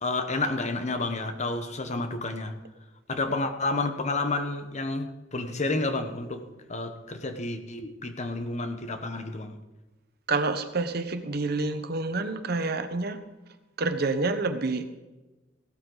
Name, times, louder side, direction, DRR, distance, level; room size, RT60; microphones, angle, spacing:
voice 1, 0.0-2.6 3.1-9.6, left 2 dB, 40° left, 8 dB, 1.1 m, -30 dB
voice 2, 10.3-13.2 13.8-15.0, right 3 dB, 60° right, 9 dB, 1.0 m, -28 dB
16.0 x 13.0 x 4.0 m, 1.1 s
head